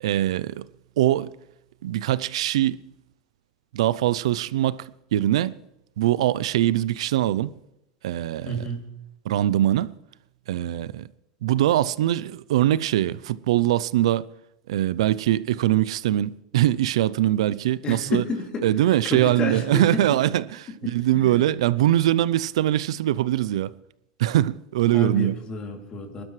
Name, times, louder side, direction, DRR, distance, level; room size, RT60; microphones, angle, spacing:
voice 1, 0.0-0.7 1.0-1.3 1.8-2.8 3.7-5.6 6.0-7.5 8.0-8.6 9.3-9.9 10.5-11.1 11.4-14.3 14.7-18.2 18.6-23.7 24.2-25.4, right 13 dB, 85° right, 0.5 m, -22 dB
voice 2, 8.4-8.9 17.8-18.6 19.0-20.0 20.8-21.4 24.9-26.2, left 1 dB, 30° left, 2.9 m, -30 dB
22.0 x 12.0 x 3.2 m
supercardioid pair, 120°, 3 cm